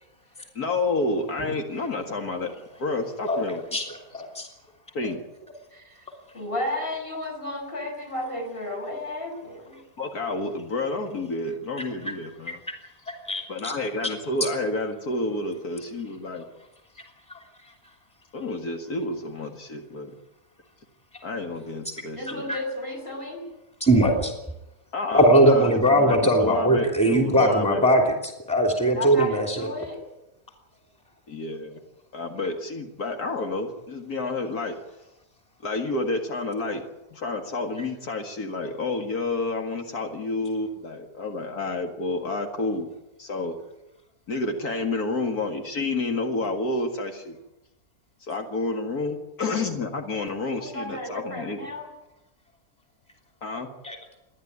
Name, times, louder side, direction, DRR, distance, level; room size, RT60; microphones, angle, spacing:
voice 1, 0.6-2.5 2.8-3.6 4.9-5.2 10.0-12.6 13.5-16.4 18.3-20.1 21.2-22.4 24.9-27.9 31.3-31.8 32.1-34.8 35.6-36.8 37.1-42.9 43.2-43.6 44.3-47.4 48.2-51.6 53.4-53.7, left 2 dB, 80° left, 3 dB, 2.4 m, -29 dB
voice 2, 4.1-4.5 13.3-13.7 22.5-22.6 23.8-24.3 25.1-29.7 53.8-54.0, right 1 dB, 5° left, 2 dB, 3.1 m, -20 dB
voice 3, 5.7-6.0 6.3-9.8 14.0-14.1 22.1-23.4 28.9-30.0 50.5-51.9, left 2 dB, 35° left, 3 dB, 6.4 m, -33 dB
28.5 x 11.0 x 9.7 m, 0.93 s
omnidirectional pair, 1.6 m